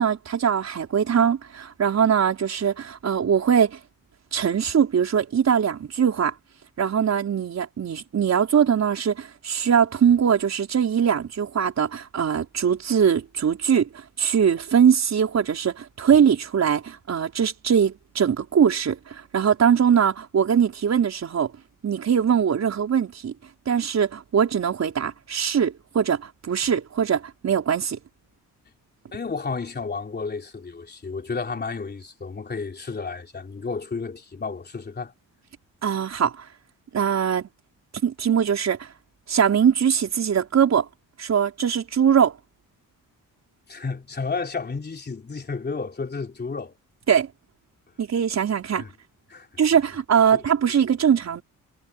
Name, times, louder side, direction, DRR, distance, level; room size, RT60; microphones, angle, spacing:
voice 1, 0.0-3.8 4.3-6.3 6.8-21.5 21.8-23.3 23.6-28.0 35.8-36.5 36.9-37.5 38.0-38.9 39.3-40.9 41.2-42.4 47.1-47.3 48.0-48.8 49.6-51.4, right 8 dB, 50° right, 4.8 m, -21 dB
voice 2, 29.1-35.1 43.7-46.7 48.8-48.9 49.3-49.5 50.3-50.4, left 4 dB, 30° left, 3.3 m, -32 dB
cardioid pair, 100°, 33 cm